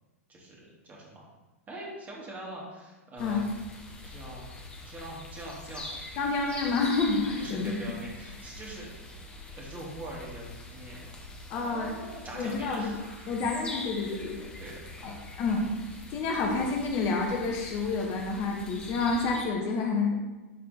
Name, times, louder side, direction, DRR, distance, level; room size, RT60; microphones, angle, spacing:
voice 1, 0.3-1.3 1.7-3.4 4.0-4.5 4.9-5.9 7.4-8.9 9.6-11.1 11.5-13.4 14.2-15.1, right 1 dB, 20° right, -3 dB, 2.6 m, -43 dB
sound 1, 3.2-19.5, left 2 dB, 15° left, 1.4 m, -44 dB
voice 2, 6.2-8.0 11.5-11.9 12.3-13.0 13.3-14.5 15.0-15.7 16.1-20.1, left 4 dB, 35° left, 1 dB, 1.1 m, -29 dB
12.0 x 4.3 x 4.2 m, 1.2 s
figure-of-eight pair, 95°, 8 cm